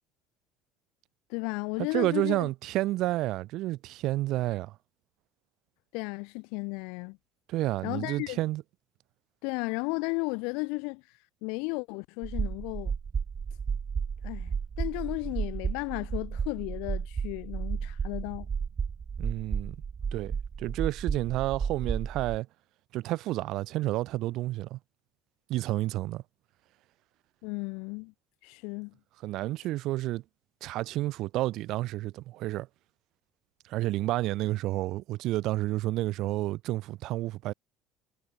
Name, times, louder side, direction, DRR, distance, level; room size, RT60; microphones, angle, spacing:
voice 1, 1.3-2.5 5.9-7.2 7.8-8.4 9.4-11.0 11.4-12.9 14.2-18.5 27.4-28.1 28.4-28.9, left 32 dB, 80° left, 0.6 m, -34 dB
voice 2, 1.9-4.7 7.5-8.6 19.2-19.8 20.1-22.5 22.9-24.8 25.5-26.2 29.2-30.2 30.6-32.7 33.7-37.5, right 17 dB, 55° right, 0.8 m, -30 dB
sound 1, 12.2-22.4, right 6 dB, 25° right, 0.4 m, -33 dB
cardioid pair, 160°, 0 cm